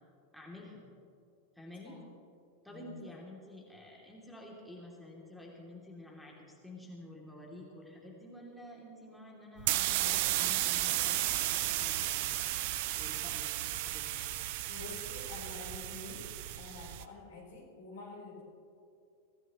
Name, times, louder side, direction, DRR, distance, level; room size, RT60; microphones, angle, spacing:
voice 1, 0.3-0.8 1.5-2.0 2.6-12.5 12.9-14.2, left 1 dB, ahead, -3 dB, 2.9 m, -50 dB
voice 2, 2.7-3.2 14.7-18.4, left 3 dB, 60° left, -3 dB, 4.3 m, -48 dB
sound 1, 9.6-17.0, right 14 dB, 50° right, 0.6 m, -33 dB
23.5 x 16.0 x 3.1 m, 2.5 s
figure-of-eight pair, 90°, 0 cm